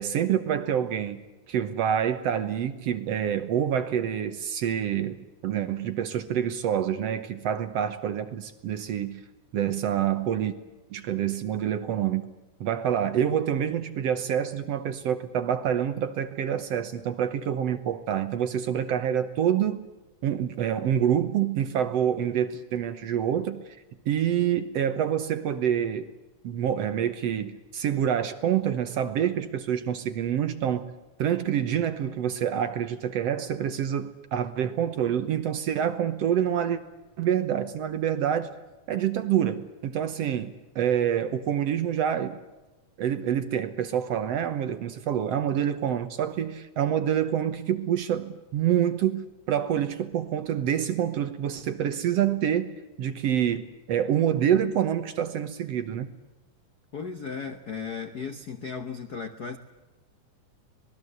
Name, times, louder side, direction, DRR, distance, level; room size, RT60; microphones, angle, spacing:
voice 1, 0.0-5.2 5.4-9.2 9.5-10.5 10.9-12.3 12.6-19.9 20.2-23.8 24.1-26.1 26.4-30.9 31.2-36.8 37.2-38.5 38.9-42.4 43.0-56.1, right 9 dB, 65° right, 10 dB, 1.9 m, -27 dB
voice 2, 56.9-59.6, left 5 dB, 80° left, 7 dB, 0.8 m, -35 dB
26.0 x 20.0 x 8.0 m, 1.1 s
omnidirectional pair, 3.6 m